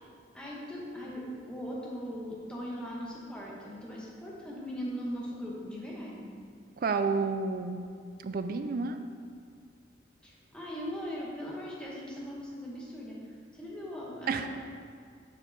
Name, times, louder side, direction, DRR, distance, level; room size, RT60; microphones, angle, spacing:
voice 1, 0.3-1.2 1.5-6.2 10.2-14.5, equal, 5° left, -5 dB, 1.1 m, -39 dB
voice 2, 6.8-7.8 8.2-9.0 14.3-14.5, right 4 dB, 50° right, 8 dB, 0.3 m, -30 dB
6.7 x 4.5 x 4.0 m, 2.1 s
head